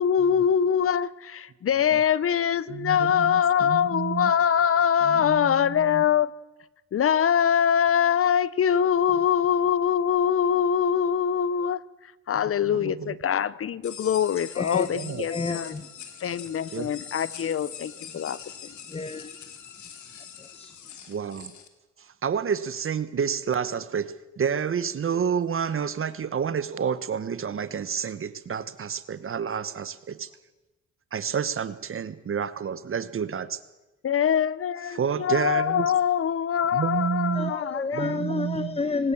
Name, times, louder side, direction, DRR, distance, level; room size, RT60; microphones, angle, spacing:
voice 1, 0.0-6.3 6.9-11.8 12.3-15.7 16.2-18.4 34.0-38.2, left 8 dB, 50° left, 0.8 m, -23 dB
voice 2, 2.7-4.3 5.0-6.0 12.7-13.1 14.9-15.3 16.7-16.9 21.1-21.5 22.0-30.3 31.1-33.6 34.9-35.9 36.7-37.5 37.9-38.8, right 7 dB, 45° right, 1.2 m, -29 dB
sound 1, 13.8-21.7, left 8 dB, 70° left, 3.2 m, -43 dB
voice 3, 14.5-14.9 15.3-15.9 18.9-19.5 20.4-20.7 37.3-39.1, left 3 dB, 20° left, 1.1 m, -30 dB
24.0 x 19.5 x 7.3 m
cardioid pair, 90°, 30 cm